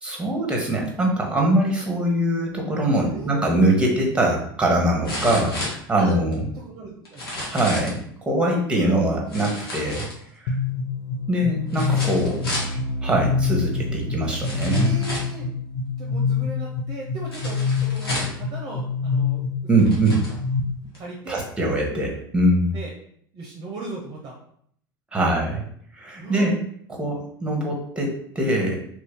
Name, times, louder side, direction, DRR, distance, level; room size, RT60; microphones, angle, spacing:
voice 1, 0.0-6.5 7.5-10.1 10.4-10.5 11.3-12.5 13.0-14.9 19.7-20.2 21.3-22.7 25.1-25.6 26.0-26.6 26.9-28.7, right 1 dB, 10° right, 0 dB, 1.2 m, -22 dB
voice 2, 3.0-3.4 5.9-6.2 6.5-7.3 8.8-9.1 12.0-12.1 12.5-12.6 12.8-13.0 14.7-15.5 16.0-19.4 19.8-20.2 20.9-21.5 22.7-22.9 23.3-24.3 26.2-26.5, right 3 dB, 35° right, -1 dB, 0.8 m, -38 dB
sound 1, 3.7-3.8 5.0-6.3 7.1-8.0 9.3-10.5 11.7-12.8 13.7-13.8 14.4-15.4 17.3-18.5 19.3-19.4 19.8-20.4 20.9-21.0, left 1 dB, 85° left, 1.1 m, -32 dB
sound 2, 10.5-20.6, left 5 dB, 60° left, 0.7 m, -26 dB
3.1 x 2.7 x 3.5 m, 0.66 s
hypercardioid pair, 80°, 12 cm